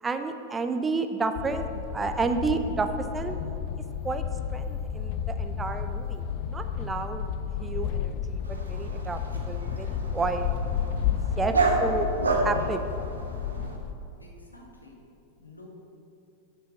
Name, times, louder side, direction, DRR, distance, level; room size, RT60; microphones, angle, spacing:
voice 1, 0.0-3.3 4.0-4.2 4.5-7.3 7.6-10.5 11.1-11.5 11.8-12.1 12.4-12.8, right 4 dB, 15° right, 7 dB, 0.5 m, -31 dB
sound 1, 1.4-13.9, left 8 dB, 45° left, 0.4 m, -32 dB
Dog, 8.4-13.8, right 3 dB, 75° right, 1.1 m, -30 dB
voice 2, 14.2-15.0 15.4-15.7, left 2 dB, 85° left, -1 dB, 1.5 m, -50 dB
7.2 x 6.2 x 7.1 m, 2.7 s
figure-of-eight pair, 90°, 0 cm